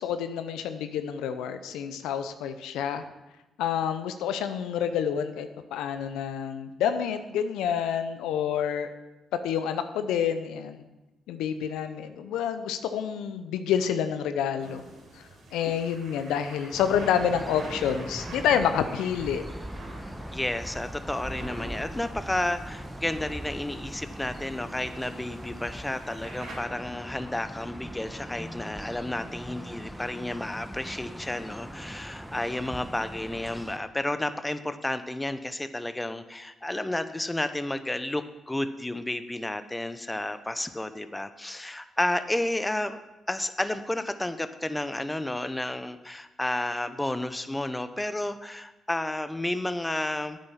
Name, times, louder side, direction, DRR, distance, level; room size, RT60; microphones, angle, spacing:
voice 1, 0.0-3.0 3.6-8.9 9.4-10.8 11.3-14.8 15.2-15.3 15.5-19.4, left 8 dB, 80° left, 10 dB, 0.6 m, -28 dB
sound 1, 14.6-26.6, right 1 dB, 80° right, 4.4 m, -46 dB
sound 2, 16.7-33.8, equal, 5° right, 1.0 m, -40 dB
voice 2, 20.3-43.0 43.3-50.4, left 1 dB, 15° left, 11 dB, 0.8 m, -31 dB
9.1 x 8.7 x 5.8 m, 1.0 s
hypercardioid pair, 50°, 0 cm